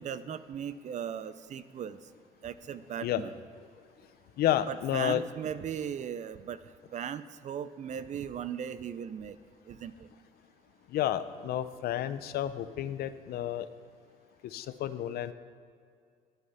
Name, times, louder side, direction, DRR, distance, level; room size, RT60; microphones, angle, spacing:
voice 1, 0.0-2.0 2.4-3.3 4.7-6.6 6.9-9.4 9.7-9.9, right 8 dB, 45° right, 14 dB, 0.5 m, -37 dB
voice 2, 4.4-5.2 10.9-13.7 14.4-15.3, left 12 dB, 65° left, 12 dB, 0.6 m, -31 dB
11.5 x 8.0 x 5.7 m, 2.2 s
cardioid pair, 110°, 17 cm